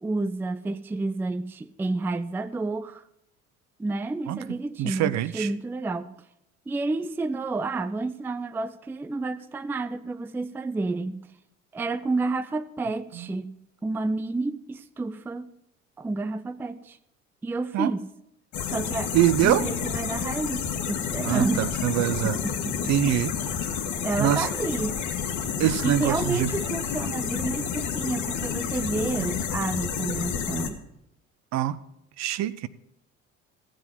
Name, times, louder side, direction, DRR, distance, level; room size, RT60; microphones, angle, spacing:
voice 1, 0.0-3.0 3.8-6.1 6.7-11.1 11.7-13.5 13.8-15.5 16.0-17.0 17.4-18.0 18.7-19.1 19.4-21.7 22.2-23.2 24.0-25.0 25.8-30.8, right 3 dB, 5° right, 13 dB, 0.4 m, -30 dB
voice 2, 4.8-5.5 17.7-17.9 19.1-19.6 21.2-22.4 22.9-23.3 23.6-23.7 24.2-24.5 25.6-26.5 31.5-31.8 32.2-32.7, right 12 dB, 45° right, 17 dB, 0.6 m, -24 dB
sound 1, 18.5-30.7, left 7 dB, 50° left, 1.4 m, -30 dB
15.0 x 7.6 x 5.7 m, 0.82 s
figure-of-eight pair, 60°, 37 cm